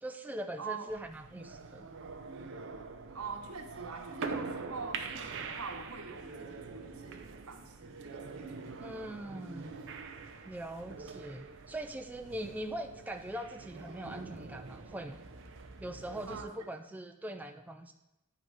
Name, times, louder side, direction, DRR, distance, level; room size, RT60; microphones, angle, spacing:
voice 1, 0.0-1.9 8.8-9.9 10.4-15.2 15.8-17.9, right 1 dB, 5° right, 5 dB, 0.3 m, -42 dB
voice 2, 0.6-0.9 3.1-8.8 16.3-16.7, right 4 dB, 85° right, 3 dB, 1.1 m, -44 dB
sound 1, 0.9-16.4, right 4 dB, 60° right, 0.6 m, -44 dB
9.2 x 3.8 x 4.8 m, 0.94 s
head